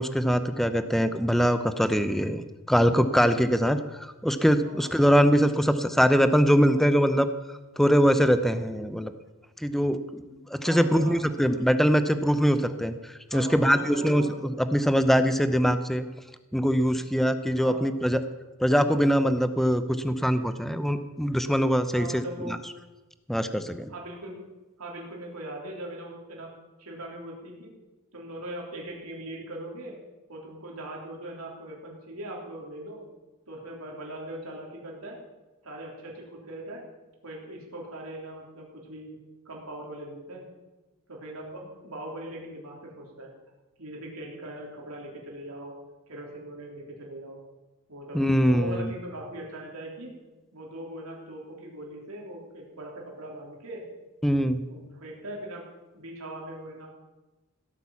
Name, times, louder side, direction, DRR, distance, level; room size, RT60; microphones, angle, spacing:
voice 1, 0.0-7.3 7.8-9.1 9.6-10.2 10.5-12.9 13.3-14.2 14.7-16.1 16.5-18.2 18.6-22.6 23.3-23.9 48.1-48.9 54.2-54.6, equal, ahead, 10 dB, 0.7 m, -23 dB
voice 2, 4.6-5.0 10.6-11.2 11.4-11.7 13.3-14.3 16.9-17.0 17.6-17.9 21.9-22.6 23.9-24.4 24.8-26.5 26.8-27.7 28.1-30.0 30.3-33.0 33.5-35.2 35.6-36.8 37.2-39.2 39.5-40.5 41.1-43.3 43.8-45.8 46.1-47.4 47.9-48.2 48.5-50.2 50.5-53.8 54.7-55.7 55.9-56.9, right 1 dB, 80° right, -2 dB, 3.4 m, -40 dB
16.5 x 8.8 x 7.1 m, 1.1 s
head